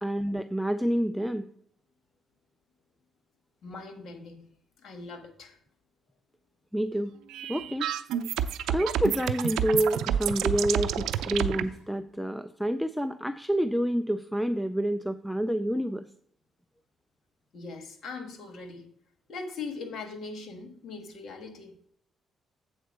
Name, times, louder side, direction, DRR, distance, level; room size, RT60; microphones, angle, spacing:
voice 1, 0.0-1.4 6.7-7.2 7.5-7.9 8.7-16.1, right 1 dB, ahead, 0.4 m, -28 dB
voice 2, 3.6-4.4 4.8-5.6 7.5-7.7 17.5-18.9 19.3-21.7, left 4 dB, 65° left, 1.5 m, -40 dB
sound 1, 7.3-11.6, right 10 dB, 85° right, 0.4 m, -29 dB
7.9 x 4.3 x 6.4 m
cardioid pair, 90°, 0 cm